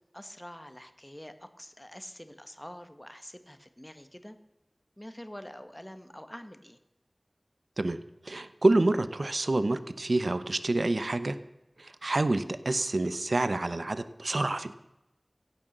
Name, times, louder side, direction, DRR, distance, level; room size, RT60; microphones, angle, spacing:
voice 1, 0.1-4.4 5.0-6.8, equal, 15° left, 9 dB, 1.5 m, -46 dB
voice 2, 7.8-11.4 11.8-14.7, right 2 dB, 85° right, 13 dB, 0.8 m, -28 dB
16.0 x 11.0 x 6.6 m, 0.94 s
wide cardioid pair, 45°, 0 cm